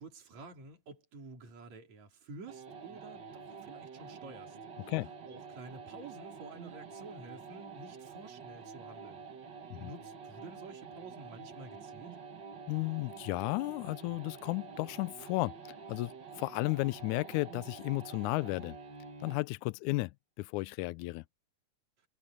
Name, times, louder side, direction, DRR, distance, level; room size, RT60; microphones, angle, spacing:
voice 1, 0.0-4.9 5.2-9.3 9.8-12.2, right 3 dB, 65° right, 5.3 m, -50 dB
sound 1, 2.5-19.5, right 5 dB, 40° right, 2.0 m, -48 dB
voice 2, 12.7-15.5 15.9-18.8 19.2-21.2, left 22 dB, 80° left, 2.0 m, -34 dB
omnidirectional pair, 3.5 m